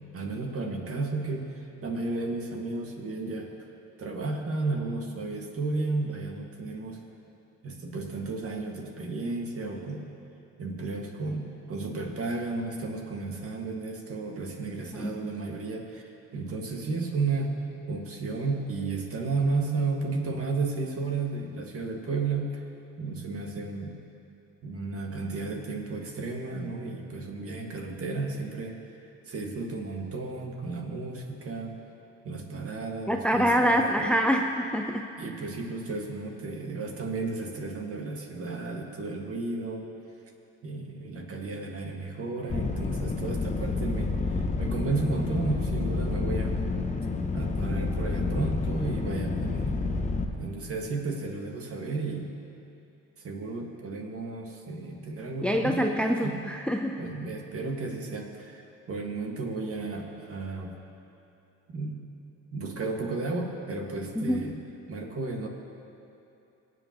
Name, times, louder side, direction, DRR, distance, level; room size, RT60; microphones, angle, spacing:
voice 1, 0.1-3.5 4.0-7.0 7.6-10.1 10.6-17.5 17.9-22.6 23.0-23.9 24.6-28.8 29.3-31.7 32.2-34.1 35.2-39.9 40.6-46.5 47.3-49.8 50.3-52.3 53.2-55.8 56.2-56.4 57.0-58.6 58.9-60.7 61.7-62.0 62.5-64.6 64.9-65.5, right 3 dB, 45° right, 1 dB, 1.7 m, -33 dB
voice 2, 33.1-35.1 55.4-57.0 64.2-64.4, equal, 5° left, 3 dB, 0.5 m, -25 dB
sound 1, 42.5-50.2, left 3 dB, 25° left, 0.9 m, -29 dB
22.0 x 7.8 x 2.9 m, 2.8 s
supercardioid pair, 75°, 31 cm